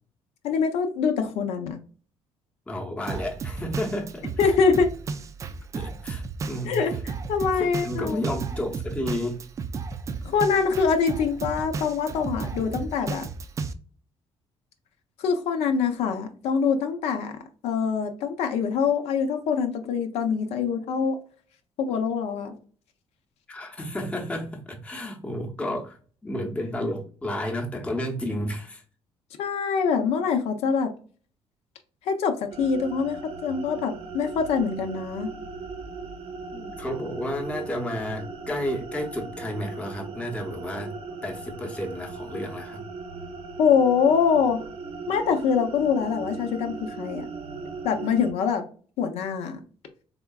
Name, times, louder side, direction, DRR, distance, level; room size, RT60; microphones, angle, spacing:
voice 1, 0.4-1.8 4.4-4.9 6.7-8.2 10.2-13.3 15.2-17.4 17.6-21.2 21.8-22.6 29.4-30.9 32.1-35.3 43.6-44.6 45.1-47.3 47.8-48.6 49.0-49.6, left 6 dB, 80° left, 5 dB, 0.7 m, -24 dB
voice 2, 2.7-4.5 5.7-6.8 7.5-9.4 23.5-26.0 26.2-28.8 36.5-40.9 41.2-42.8, left 1 dB, 10° left, 1 dB, 0.7 m, -31 dB
Drum kit, 3.1-13.7, right 4 dB, 30° right, 0.3 m, -34 dB
sound 1, 32.5-48.3, right 4 dB, 65° right, 0.6 m, -38 dB
3.7 x 3.5 x 2.3 m, 0.41 s
cardioid pair, 135°, 10 cm